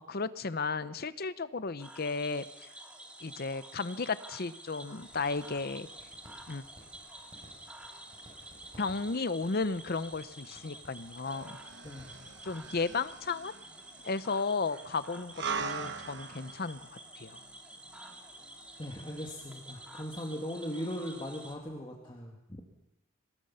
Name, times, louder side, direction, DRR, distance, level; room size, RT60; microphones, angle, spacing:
voice 1, 0.1-2.7 3.2-5.9 6.5-6.6 8.8-11.6 12.4-13.5 14.0-17.4, left 4 dB, 45° left, 14 dB, 0.7 m, -34 dB
Cricket / Frog, 1.8-21.5, right 1 dB, 5° right, 2.3 m, -50 dB
sound 1, 4.8-13.1, right 1 dB, 25° right, 7.0 m, -58 dB
sound 2, 11.2-20.7 21.1-21.2, right 5 dB, 55° right, 1.2 m, -43 dB
voice 2, 18.8-22.6, equal, 25° left, 0 dB, 2.1 m, -39 dB
25.0 x 19.5 x 5.7 m, 0.90 s
head